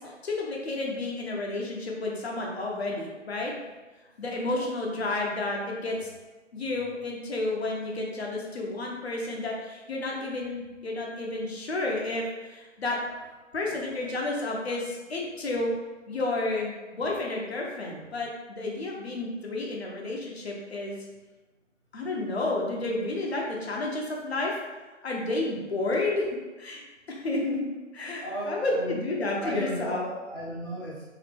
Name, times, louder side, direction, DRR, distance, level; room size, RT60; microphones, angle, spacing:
voice 1, 0.2-3.5 4.2-6.1 6.5-13.0 13.5-15.7 16.1-21.0 21.9-24.6 25.0-26.2 26.6-26.8 27.1-27.6 27.9-30.0, left 2 dB, 55° left, -1 dB, 0.9 m, -31 dB
voice 2, 13.6-13.9 28.2-29.0 29.4-31.0, equal, 20° left, -11 dB, 0.8 m, -36 dB
3.0 x 2.8 x 3.3 m, 1.2 s
figure-of-eight pair, 155°, 38 cm